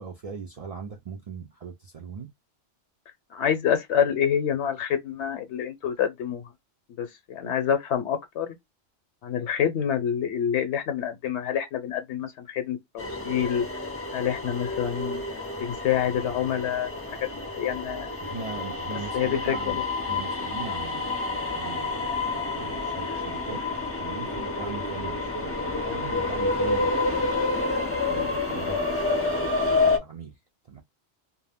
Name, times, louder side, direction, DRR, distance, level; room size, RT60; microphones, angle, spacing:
voice 1, 0.0-2.3 18.2-19.8 20.1-21.2 21.5-22.0 22.5-23.7 24.0-27.4 28.1-30.4 30.7-30.8, right 6 dB, 60° right, 0.3 m, -40 dB
voice 2, 3.3-6.4 7.0-8.6 9.2-13.7 14.1-15.2 15.6-16.9 17.5-18.1 19.1-19.7, left 9 dB, 75° left, 0.9 m, -27 dB
sound 1, 13.0-30.0, left 3 dB, 25° left, 0.3 m, -29 dB
2.3 x 2.1 x 3.4 m
omnidirectional pair, 1.2 m